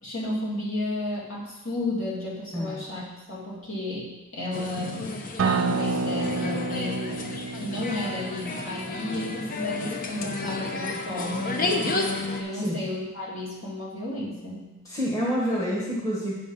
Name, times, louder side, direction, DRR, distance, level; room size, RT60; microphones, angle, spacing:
voice 1, 0.0-3.0 3.3-5.0 5.4-7.3 7.6-14.7, left 1 dB, 60° left, -6 dB, 2.3 m, -32 dB
sound 1, 4.5-12.4, left 2 dB, 40° left, 0.7 m, -32 dB
Acoustic guitar, 5.4-10.6, right 4 dB, 60° right, 0.3 m, -30 dB
voice 2, 12.5-12.8 14.8-16.3, equal, 15° left, -5 dB, 1.4 m, -28 dB
7.8 x 5.1 x 5.3 m, 1.1 s
head